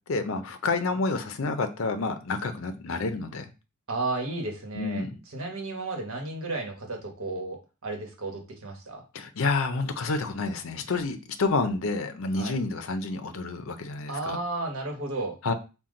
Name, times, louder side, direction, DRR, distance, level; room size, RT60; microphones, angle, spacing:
voice 1, 0.1-3.5 4.7-5.2 9.1-14.4 15.4-15.5, left 3 dB, 65° left, 8 dB, 0.5 m, -29 dB
voice 2, 3.9-5.0 5.3-9.0 12.4-12.5 14.1-15.4, right 2 dB, 75° right, 3 dB, 1.2 m, -33 dB
5.8 x 2.3 x 3.7 m, 0.30 s
head